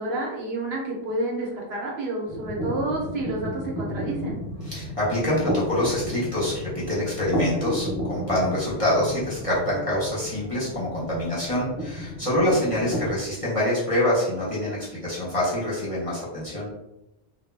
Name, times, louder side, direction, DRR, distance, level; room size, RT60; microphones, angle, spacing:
voice 1, 0.0-4.4 12.3-12.5, right 2 dB, 65° right, -3 dB, 0.9 m, -29 dB
sound 1, 2.3-13.1, left 1 dB, 20° right, 0.6 m, -32 dB
voice 2, 4.6-16.7, left 1 dB, 35° left, -8 dB, 0.7 m, -26 dB
2.2 x 2.1 x 3.1 m, 0.93 s
omnidirectional pair, 1.2 m